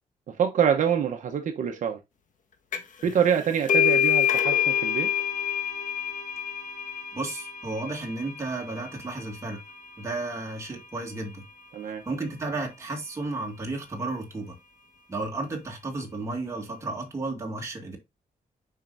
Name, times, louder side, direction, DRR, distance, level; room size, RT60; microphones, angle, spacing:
voice 1, 0.3-2.0 3.0-5.1 11.7-12.0, right 8 dB, 60° right, 1.0 m, -25 dB
sound 1, 2.7-3.0 3.3-10.6, left 9 dB, 65° left, 1.4 m, -27 dB
voice 2, 7.1-9.6 10.0-11.4 12.1-14.6 15.1-18.0, right 2 dB, 20° right, 2.2 m, -33 dB
7.5 x 5.8 x 2.6 m
wide cardioid pair, 170°, 14 cm